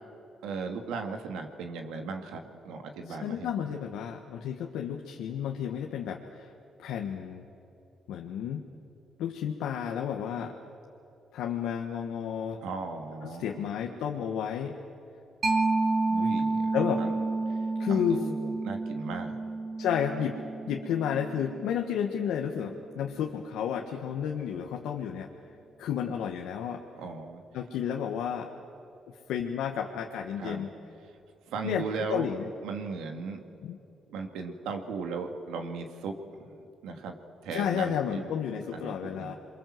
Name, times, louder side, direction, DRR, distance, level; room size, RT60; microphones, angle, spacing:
voice 1, 0.4-3.8 12.6-13.6 16.1-16.7 17.0-17.1 17.5-17.6 17.9-19.4 27.0-27.4 30.4-30.6 31.5-32.3 32.6-33.4 34.1-36.1 36.4-36.5 36.8-37.2 37.4-38.4 38.7-39.3, right 4 dB, 90° right, 4 dB, 2.4 m, -37 dB
voice 2, 3.1-6.5 6.8-7.4 8.1-8.6 9.2-10.5 11.3-12.6 13.2-14.7 16.7-17.0 17.8-18.2 19.8-20.4 20.7-25.3 25.8-26.8 27.5-28.5 29.3-30.7 31.6-32.5 33.6-33.8 37.5-39.3, left 8 dB, 85° left, 2 dB, 1.5 m, -31 dB
Mallet percussion, 15.4-22.7, right 3 dB, 50° right, 2.5 m, -30 dB
28.0 x 23.0 x 7.8 m, 2.7 s
cardioid pair, 90°, 0 cm